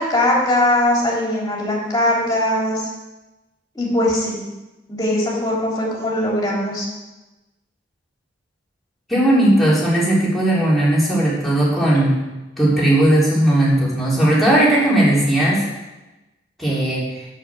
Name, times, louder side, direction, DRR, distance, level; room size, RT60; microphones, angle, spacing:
voice 1, 0.0-2.8 3.8-4.4 4.9-6.9, left 1 dB, 20° left, -4 dB, 3.6 m, -20 dB
voice 2, 9.1-12.2 12.6-15.6 16.6-17.0, right 1 dB, ahead, -8 dB, 3.9 m, -17 dB
8.0 x 7.1 x 7.7 m, 1.1 s
head